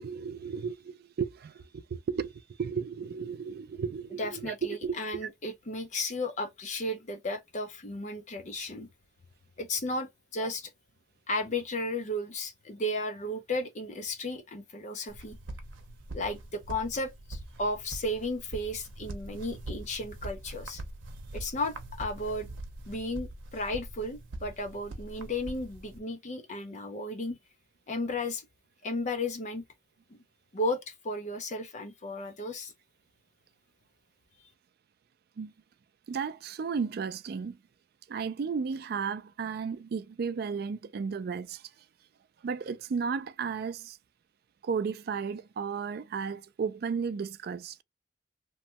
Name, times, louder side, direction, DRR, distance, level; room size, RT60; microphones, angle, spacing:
voice 1, 0.0-4.9 35.4-35.5 36.1-37.6 38.1-41.6 42.4-44.0 44.6-47.8, right 6 dB, 55° right, 0.3 m, -34 dB
voice 2, 4.2-8.9 9.6-10.7 11.3-15.4 16.1-20.8 21.3-22.5 22.9-27.4 27.9-28.4 28.8-29.6 30.5-32.7, left 1 dB, 40° left, 0.5 m, -34 dB
sound 1, 15.1-26.0, right 1 dB, 90° right, 0.7 m, -43 dB
3.0 x 2.2 x 2.7 m
head